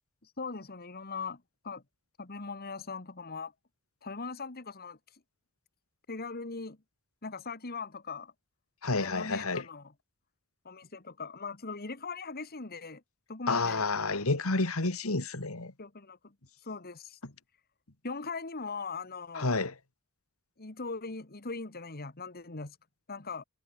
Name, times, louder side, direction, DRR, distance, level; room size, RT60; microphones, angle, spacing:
voice 1, 0.2-1.8 2.2-3.5 4.0-5.0 6.1-6.8 7.2-8.3 9.0-9.9 10.7-13.0 13.3-13.8 15.8-16.3 16.6-17.2 18.0-19.5 20.6-22.8 23.1-23.4, left 4 dB, 45° left, 1.8 m, -40 dB
voice 2, 8.8-9.6 13.5-15.7 19.4-19.7, left 3 dB, 80° left, 2.2 m, -29 dB
head